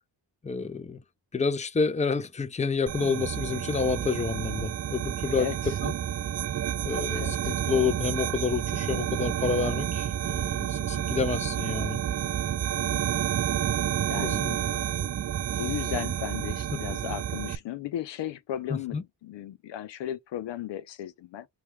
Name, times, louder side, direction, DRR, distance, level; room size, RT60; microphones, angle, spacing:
voice 1, 0.4-1.0 1.3-5.5 5.8-5.9 6.8-12.0 14.2-14.8 16.7-16.8 18.7-19.0, left 5 dB, 15° left, 0.6 m, -29 dB
sound 1, 2.9-17.5, right 10 dB, 35° right, 0.4 m, -30 dB
voice 2, 5.4-5.7 7.1-7.5 9.0-9.3 10.8-11.1 12.7-13.0 14.1-14.5 15.6-21.5, left 11 dB, 70° left, 0.6 m, -36 dB
3.2 x 2.8 x 3.3 m
supercardioid pair, 55°, 46 cm